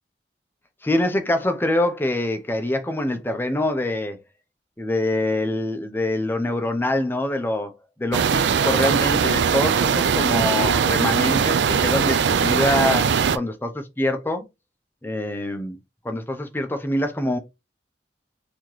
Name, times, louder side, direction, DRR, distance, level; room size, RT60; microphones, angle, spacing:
voice 1, 0.8-4.2 4.8-7.7 8.0-14.5 15.0-15.8 16.0-17.4, left 1 dB, 10° left, 0.7 m, -25 dB
sound 1, 8.1-13.4, right 6 dB, 70° right, 0.4 m, -20 dB
4.1 x 2.9 x 3.1 m
head